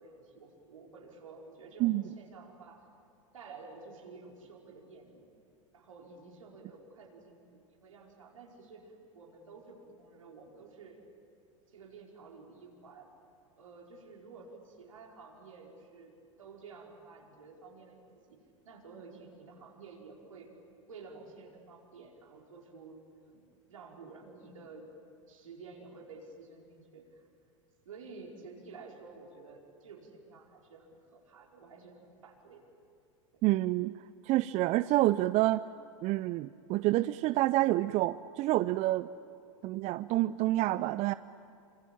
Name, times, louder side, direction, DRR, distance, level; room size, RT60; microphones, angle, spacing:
voice 1, 0.0-2.8 3.3-5.2 5.7-11.0 11.7-13.1 13.6-18.4 18.6-20.5 20.9-24.9 25.3-27.2 27.8-32.6 33.3-33.4, right 4 dB, 80° right, 0 dB, 4.9 m, -51 dB
voice 2, 33.4-33.9 34.2-35.6 36.0-39.1 39.6-41.1, right 17 dB, 45° right, 16 dB, 0.5 m, -28 dB
26.0 x 25.5 x 8.7 m, 2.5 s
hypercardioid pair, 90°, 17 cm